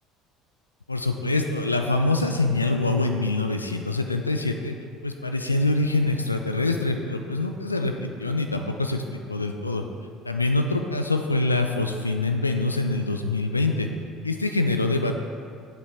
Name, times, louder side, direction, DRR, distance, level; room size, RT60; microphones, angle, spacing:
voice 1, 0.9-4.8 5.0-9.8 10.2-13.9 14.2-15.2, left 2 dB, 90° left, 5 dB, 0.4 m, -25 dB
7.5 x 7.2 x 5.4 m, 2.5 s
figure-of-eight pair, 60°, 0 cm